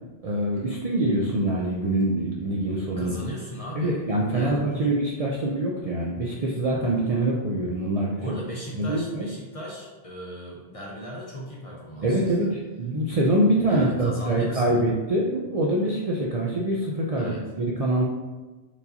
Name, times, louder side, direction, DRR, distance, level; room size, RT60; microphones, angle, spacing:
voice 1, 0.2-3.2 3.8-8.1 8.7-9.3 12.0-18.0, right 1 dB, 55° right, -3 dB, 0.4 m, -24 dB
voice 2, 3.0-4.0 4.3-5.0 8.2-12.5 13.6-14.9 17.2-17.5, equal, 40° left, -3 dB, 0.6 m, -37 dB
4.5 x 2.6 x 2.7 m, 1.2 s
omnidirectional pair, 1.1 m